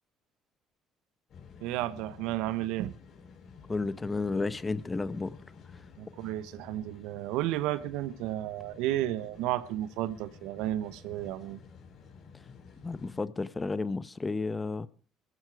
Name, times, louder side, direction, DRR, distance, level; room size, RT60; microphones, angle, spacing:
sound 1, 1.3-13.2, left 5 dB, 55° left, 5.1 m, -52 dB
voice 1, 1.6-2.9 6.0-11.6, right 14 dB, 80° right, 1.2 m, -32 dB
voice 2, 3.7-5.4 12.8-14.9, left 3 dB, 25° left, 1.1 m, -32 dB
19.0 x 14.5 x 4.8 m
supercardioid pair, 80°, 0 cm